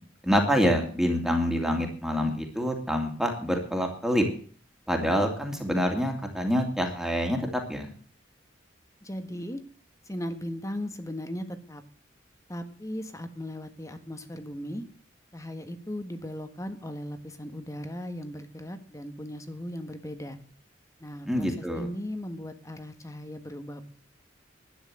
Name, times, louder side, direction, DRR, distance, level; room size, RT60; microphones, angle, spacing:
voice 1, 0.2-4.2 4.9-7.9 21.3-21.9, equal, ahead, 2 dB, 2.5 m, -26 dB
voice 2, 9.0-9.6 10.1-11.8 12.5-14.8 15.3-20.4 21.0-23.8, left 1 dB, 15° left, 9 dB, 1.5 m, -37 dB
12.0 x 9.4 x 7.7 m, 0.43 s
head